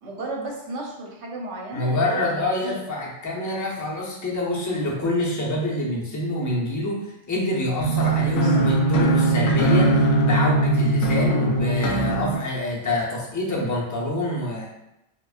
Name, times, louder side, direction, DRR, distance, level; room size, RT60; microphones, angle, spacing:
voice 1, 0.0-2.8 8.1-8.6, right 2 dB, 70° right, -1 dB, 1.1 m, -33 dB
voice 2, 1.7-14.7, left 1 dB, 20° left, -3 dB, 0.5 m, -26 dB
sound 1, 7.8-12.3, right 2 dB, 90° left, 0.9 m, -20 dB
4.8 x 2.2 x 2.4 m, 0.87 s
omnidirectional pair, 1.2 m